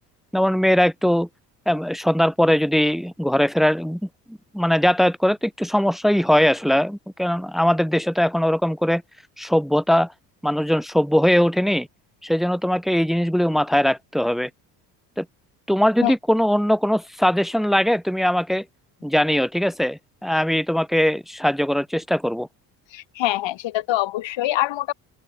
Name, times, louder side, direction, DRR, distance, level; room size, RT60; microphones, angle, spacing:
voice 1, 0.3-1.3 1.7-4.0 4.3-9.0 9.4-10.1 10.4-11.9 12.2-14.5 15.2-15.3 15.7-18.6 19.0-22.5, equal, ahead, 2.6 m, -20 dB
voice 2, 22.9-24.9, left 15 dB, 60° left, 4.6 m, -24 dB
open air
hypercardioid pair, 65°, 49 cm